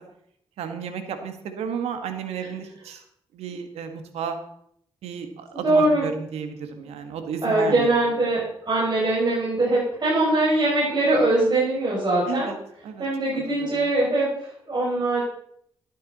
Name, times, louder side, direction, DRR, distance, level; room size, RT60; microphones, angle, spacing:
voice 1, 0.6-3.0 3.3-4.4 5.0-7.9 12.3-12.6 12.8-13.0 13.3-13.7, right 7 dB, 90° right, 7 dB, 1.6 m, -33 dB
voice 2, 5.5-6.0 6.8-6.9 7.4-12.5 13.0-15.2, right 2 dB, 45° right, -7 dB, 6.4 m, -22 dB
13.0 x 11.0 x 4.2 m, 0.71 s
supercardioid pair, 55°, 10 cm